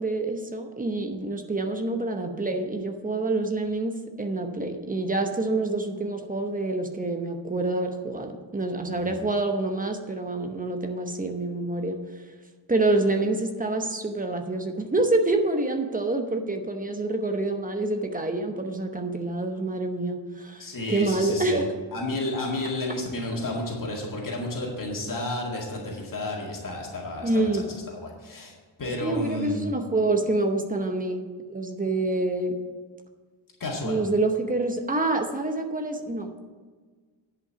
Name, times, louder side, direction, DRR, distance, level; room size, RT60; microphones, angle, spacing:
voice 1, 0.0-12.0 12.7-21.7 27.2-27.7 29.0-32.6 33.8-36.4, right 2 dB, 15° right, 4 dB, 0.8 m, -27 dB
voice 2, 8.9-9.2 20.6-21.6 21.9-29.6 33.6-34.0, left 2 dB, 40° left, -2 dB, 2.1 m, -32 dB
10.0 x 5.7 x 6.9 m, 1.5 s
wide cardioid pair, 145°, 47 cm